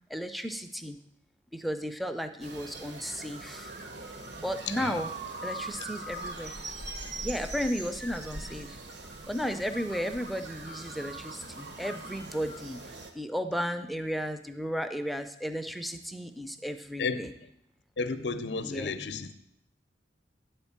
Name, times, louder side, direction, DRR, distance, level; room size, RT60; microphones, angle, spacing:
voice 1, 0.1-1.0 1.5-3.7 4.4-5.1 5.4-6.5 7.2-8.8 9.3-12.8 13.1-17.3 18.6-18.9, equal, ahead, 8 dB, 0.4 m, -34 dB
sound 1, 2.4-13.1, right 2 dB, 70° right, 1.1 m, -41 dB
voice 2, 4.7-5.0 17.0-17.3 18.0-19.3, left 4 dB, 75° left, 11 dB, 0.6 m, -32 dB
9.6 x 4.4 x 7.2 m, 0.80 s
head